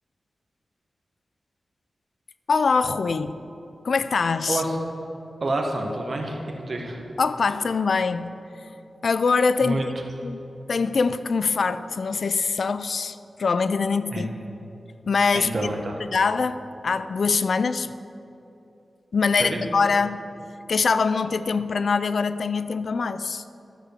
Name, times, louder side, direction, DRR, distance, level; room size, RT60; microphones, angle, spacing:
voice 1, 2.5-3.4 3.8-4.6 7.2-8.4 9.0-9.8 10.2-10.4 10.7-14.3 15.1-15.5 16.1-17.9 19.1-20.2 20.7-23.4, left 4 dB, 65° left, 13 dB, 0.3 m, -23 dB
voice 2, 4.5-4.8 5.4-7.0 9.6-9.9 14.1-14.3 15.3-16.0 19.4-19.6, right 2 dB, 55° right, 2 dB, 1.3 m, -28 dB
12.5 x 5.0 x 6.7 m, 2.9 s
wide cardioid pair, 105°, 0 cm